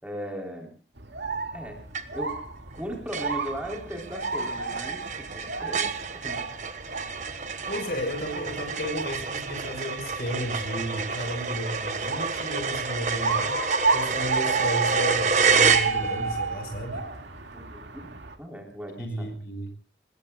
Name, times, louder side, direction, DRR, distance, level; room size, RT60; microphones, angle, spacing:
voice 1, 0.0-0.7 1.5-1.9 2.1-2.4 2.8-6.5 17.5-18.0 18.4-19.3, equal, 5° right, 0 dB, 3.8 m, -37 dB
sound 1, 1.0-18.3, right 4 dB, 85° right, 2.3 m, -32 dB
sound 2, 1.9-2.4 2.7-2.8 3.1-16.4, right 5 dB, 45° right, 1.3 m, -28 dB
voice 2, 7.7-13.6 13.9-17.1 19.0-19.7, equal, 60° left, 7 dB, 5.3 m, -33 dB
26.0 x 21.0 x 2.4 m, 0.38 s
head